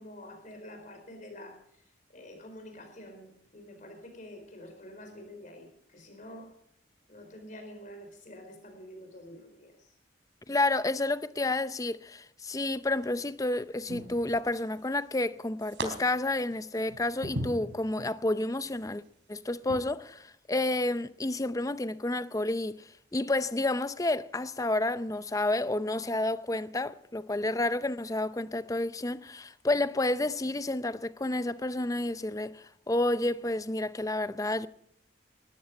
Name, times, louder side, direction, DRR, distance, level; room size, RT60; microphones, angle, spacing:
voice 1, 0.0-1.6 2.1-6.5 7.1-9.9, left 1 dB, 45° left, 4.5 m, -47 dB
voice 2, 10.5-19.0 19.3-34.7, left 2 dB, 20° left, 0.6 m, -30 dB
sound 1, 12.7-13.2 13.9-14.8 15.1-15.9 16.3-18.2 18.7-18.9 19.6-19.8, right 1 dB, 75° right, 3.4 m, -39 dB
19.5 x 13.5 x 5.2 m
head